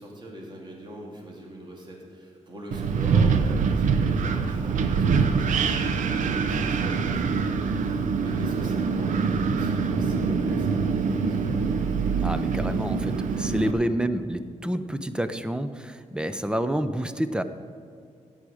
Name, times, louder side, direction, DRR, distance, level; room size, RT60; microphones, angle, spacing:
voice 1, 0.0-5.6 5.9-9.1 9.4-11.5 13.6-13.9, right 1 dB, 35° right, -1 dB, 2.2 m, -42 dB
Wind, 2.7-13.7, right 5 dB, 85° right, 0.7 m, -24 dB
voice 2, 12.2-17.4, right 1 dB, 5° right, 11 dB, 0.5 m, -28 dB
13.5 x 8.5 x 4.9 m, 2.4 s
wide cardioid pair, 125°, 13 cm